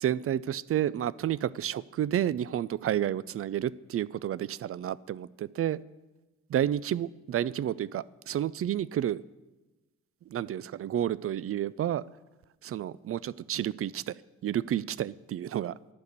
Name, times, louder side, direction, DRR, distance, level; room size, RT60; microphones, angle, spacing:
voice 1, 0.0-5.8 6.5-9.2 10.3-12.0 12.6-14.2 14.4-15.7, right 11 dB, 45° right, 0.4 m, -30 dB
11.5 x 5.2 x 8.0 m
supercardioid pair, 55°, 31 cm